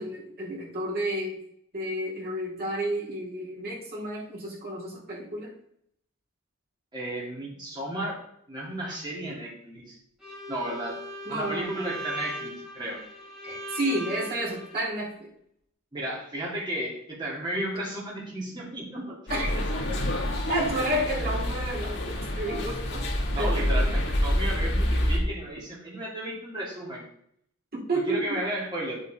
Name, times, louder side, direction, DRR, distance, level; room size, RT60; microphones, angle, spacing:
voice 1, 0.0-1.4 1.7-5.5 8.8-8.9 11.2-11.7 13.4-15.3 18.3-18.4 19.3-19.5 20.5-23.1 23.4-23.9 27.7-28.4, right 1 dB, 50° right, -5 dB, 4.3 m, -31 dB
voice 2, 6.9-8.2 8.5-10.0 10.5-11.0 11.3-13.0 15.9-19.2 19.5-20.0 23.3-27.0 28.1-29.0, right 1 dB, 20° right, -5 dB, 3.0 m, -34 dB
Bowed string instrument, 10.2-14.9, equal, ahead, 4.2 m, -39 dB
sound 1, 19.3-25.2, equal, 55° left, 3.0 m, -27 dB
9.5 x 7.9 x 3.6 m, 0.68 s
head